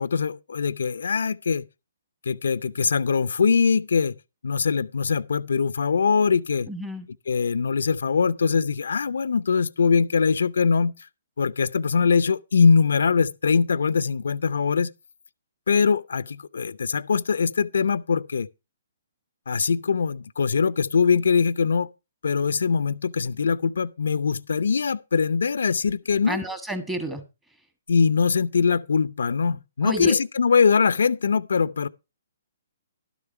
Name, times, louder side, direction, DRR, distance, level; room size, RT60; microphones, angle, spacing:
voice 1, 0.0-1.7 2.3-4.1 4.4-6.7 7.3-10.9 11.4-14.9 15.7-18.5 19.5-21.9 22.2-26.4 27.9-31.9, left 5 dB, 80° left, 0.5 m, -22 dB
voice 2, 6.7-7.1 26.3-27.2 29.8-30.2, right 1 dB, 10° right, 1.6 m, -30 dB
12.0 x 7.1 x 4.5 m
hypercardioid pair, 150°, 0 cm